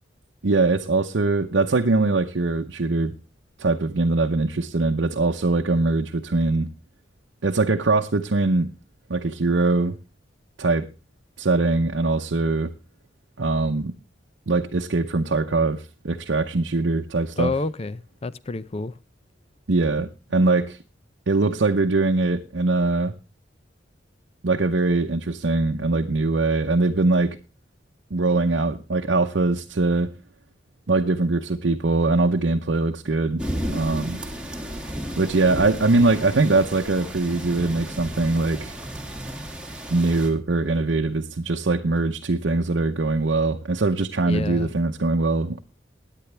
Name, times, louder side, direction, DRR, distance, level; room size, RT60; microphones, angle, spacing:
voice 1, 0.4-3.1 3.6-6.7 7.4-8.7 9.1-10.0 10.6-10.9 11.4-12.7 13.4-13.9 14.5-17.5 19.7-20.8 21.3-23.1 24.4-27.4 28.1-30.1 30.9-33.4 33.7-34.2 35.2-38.7 39.9-45.6, right 3 dB, 75° right, 0.8 m, -22 dB
voice 2, 17.4-19.0 35.9-36.1 44.2-44.7, left 3 dB, 35° left, 0.6 m, -29 dB
sound 1, 33.4-40.3, equal, 5° right, 2.1 m, -33 dB
17.0 x 10.0 x 3.3 m
head